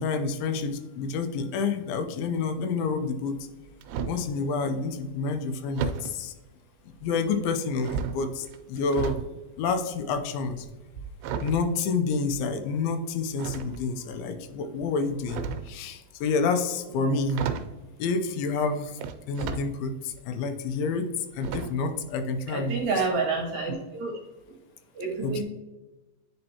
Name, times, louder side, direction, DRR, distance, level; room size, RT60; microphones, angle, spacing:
voice 1, 0.0-3.4 4.1-6.3 7.0-9.2 9.6-10.7 11.4-17.5 18.0-19.0 19.3-21.1 21.3-22.8 25.2-25.4, left 4 dB, 85° left, 7 dB, 2.5 m, -28 dB
sound 1, 3.4-4.3 5.7-6.2 7.0-7.5 7.8-9.3 9.6-12.6 13.4-14.1 15.1-15.8 16.9-17.0 17.3-17.8 19.0-19.7 20.1-20.2 21.4-21.9 22.2-22.4 22.7-22.8, right 6 dB, 90° right, 2.4 m, -34 dB
voice 2, 22.5-24.1 24.9-25.4, right 4 dB, 65° right, 0 dB, 2.0 m, -28 dB
9.8 x 4.3 x 2.8 m, 1.1 s
omnidirectional pair, 4.2 m